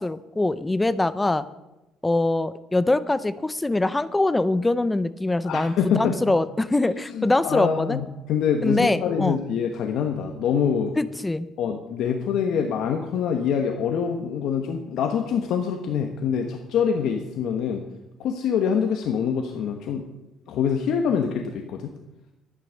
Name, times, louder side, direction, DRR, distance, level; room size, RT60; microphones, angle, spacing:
voice 1, 0.0-1.5 2.0-8.0 8.6-9.4 11.0-11.5, left 2 dB, 10° left, 15 dB, 0.5 m, -23 dB
voice 2, 5.4-6.3 7.1-10.9 11.6-17.8 18.2-20.1 20.5-21.9, left 7 dB, 60° left, 4 dB, 1.1 m, -25 dB
12.0 x 10.0 x 6.3 m, 0.98 s
cardioid pair, 175°, 0 cm